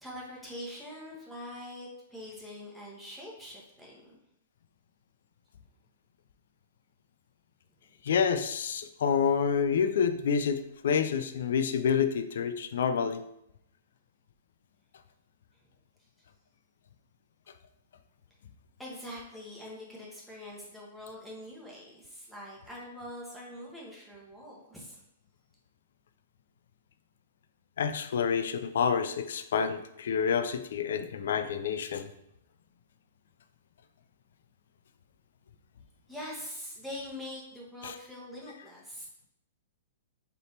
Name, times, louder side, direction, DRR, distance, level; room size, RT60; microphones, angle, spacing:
voice 1, 0.0-4.2 18.8-25.0 36.1-39.1, left 1 dB, ahead, -5 dB, 1.3 m, -43 dB
voice 2, 8.1-13.2 27.8-32.1 37.8-37.9, left 7 dB, 75° left, 10 dB, 0.4 m, -28 dB
3.8 x 3.5 x 2.8 m, 0.81 s
hypercardioid pair, 125°, 0 cm